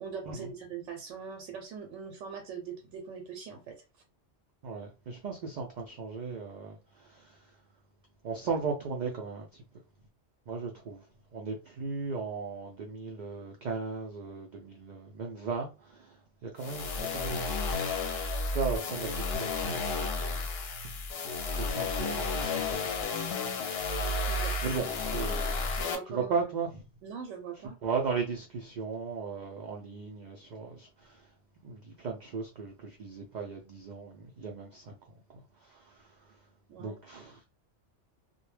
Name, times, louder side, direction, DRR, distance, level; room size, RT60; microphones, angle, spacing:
voice 1, 0.0-3.8 24.0-24.9 25.7-26.4 27.0-27.8 36.7-37.0, right 6 dB, 90° right, 0.9 m, -42 dB
voice 2, 4.6-7.4 8.2-9.5 10.5-11.0 11.3-16.2 16.4-17.4 18.5-20.5 21.2-23.6 24.1-24.3 24.6-24.8 25.1-25.6 26.1-26.8 27.8-31.2 31.6-34.9 35.7-36.1 36.8-37.4, right 5 dB, 65° right, 0.4 m, -36 dB
sound 1, 16.6-26.0, left 3 dB, 65° left, 0.8 m, -32 dB
2.2 x 2.1 x 3.1 m
omnidirectional pair, 1.2 m